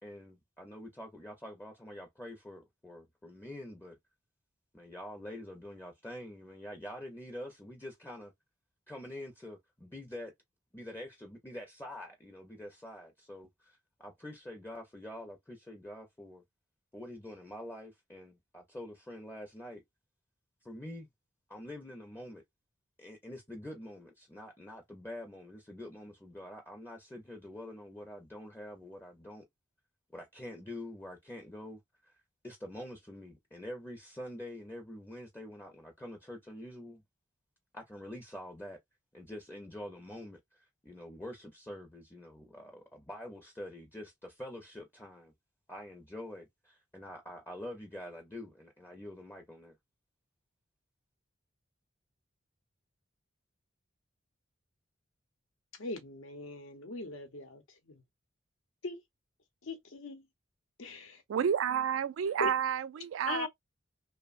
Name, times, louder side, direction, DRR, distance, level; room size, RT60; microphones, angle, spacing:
voice 1, 0.0-4.0 4.7-8.3 8.9-10.3 10.7-16.4 16.9-19.8 20.6-21.1 21.5-22.4 23.0-29.5 30.1-32.1 32.4-37.0 37.7-38.8 39.1-45.3 45.7-49.8, left 1 dB, 10° left, 0.5 m, -46 dB
voice 2, 55.8-58.0 58.8-59.0 59.6-60.3 60.8-61.1 62.4-62.5 63.3-63.5, left 3 dB, 85° left, 0.8 m, -40 dB
voice 3, 61.3-63.5, right 8 dB, 75° right, 0.3 m, -30 dB
2.9 x 2.1 x 2.4 m
head